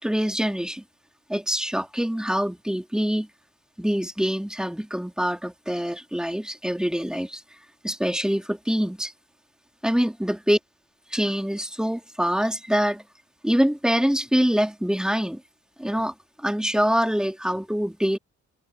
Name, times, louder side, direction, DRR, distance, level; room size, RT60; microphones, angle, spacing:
voice 1, 0.0-0.8 1.3-3.3 3.8-7.4 7.8-9.1 9.8-10.6 11.1-13.0 13.4-15.4 15.8-18.2, equal, ahead, 3.8 m, -25 dB
cardioid pair, 90°, 30 cm